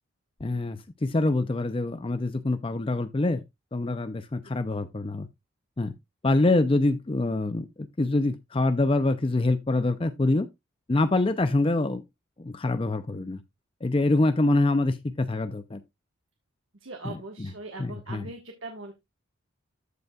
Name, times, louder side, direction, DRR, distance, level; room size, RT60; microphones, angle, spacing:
voice 1, 0.4-3.4 3.7-5.3 5.8-5.9 6.2-10.5 10.9-12.0 12.4-13.4 13.8-15.8 17.0-17.5 17.8-18.3, left 2 dB, 25° left, 0.5 m, -25 dB
voice 2, 16.8-18.9, right 2 dB, 70° right, 1.6 m, -40 dB
14.0 x 5.4 x 2.3 m
head